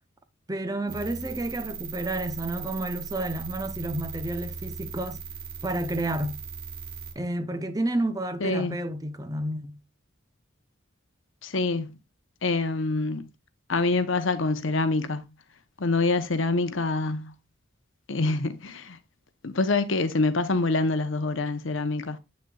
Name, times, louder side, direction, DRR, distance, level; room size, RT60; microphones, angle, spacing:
voice 1, 0.5-5.2 5.6-6.4 7.2-9.8, right 1 dB, 15° right, 0.7 m, -30 dB
sound 1, 0.9-7.1, right 6 dB, 50° right, 1.3 m, -38 dB
voice 2, 8.4-8.8 11.4-11.9 12.4-13.3 13.7-15.2 15.8-17.3 18.1-19.0 19.4-22.2, left 3 dB, 75° left, 0.9 m, -26 dB
8.4 x 6.3 x 2.4 m
head